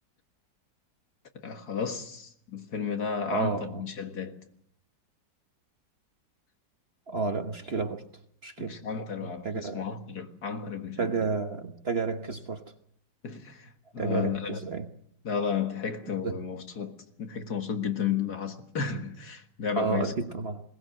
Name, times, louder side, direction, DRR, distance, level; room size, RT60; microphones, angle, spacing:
voice 1, 1.3-4.4 8.6-11.1 13.2-14.6 15.2-20.1, left 6 dB, 60° left, 2.2 m, -33 dB
voice 2, 3.3-3.8 7.1-8.0 8.4-8.9 9.4-9.8 11.0-12.6 14.0-14.9 16.2-16.4 19.8-20.6, right 4 dB, 40° right, 1.2 m, -31 dB
21.0 x 19.0 x 7.6 m
omnidirectional pair, 1.9 m